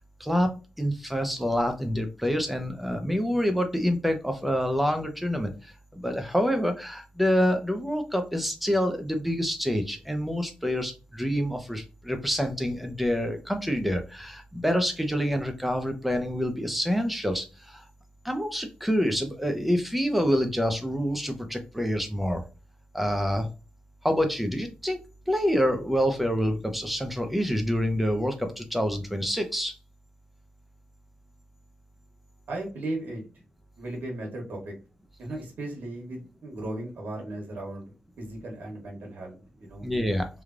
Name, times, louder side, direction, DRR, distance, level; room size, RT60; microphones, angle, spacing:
voice 1, 0.2-0.5 0.8-17.9 18.2-22.4 22.9-23.5 24.0-25.0 25.3-29.7 39.8-40.3, equal, 5° right, 5 dB, 0.6 m, -27 dB
voice 2, 32.5-33.2 33.8-34.7 35.2-39.9, right 1 dB, 90° right, -1 dB, 1.1 m, -36 dB
3.2 x 2.3 x 2.4 m, 0.31 s
wide cardioid pair, 95°, 3 cm